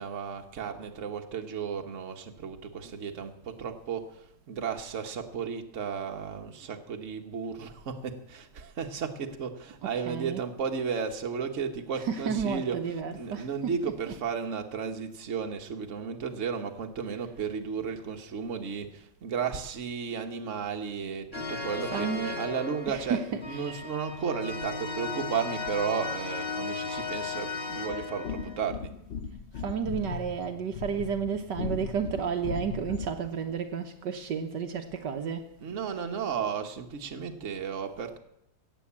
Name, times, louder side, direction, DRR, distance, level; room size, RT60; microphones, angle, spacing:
voice 1, 0.0-22.1 22.3-28.9 35.6-38.2, right 6 dB, 45° right, 1.5 m, -34 dB
voice 2, 9.8-10.4 12.0-13.7 14.1-14.2 21.9-22.4 22.9-23.7 29.6-35.5, right 7 dB, 70° right, 1.5 m, -32 dB
sound 1, 21.3-28.6, left 4 dB, 35° left, 1.6 m, -36 dB
sound 2, 27.9-33.3, left 6 dB, 55° left, 0.7 m, -38 dB
17.0 x 8.1 x 8.6 m
omnidirectional pair, 2.0 m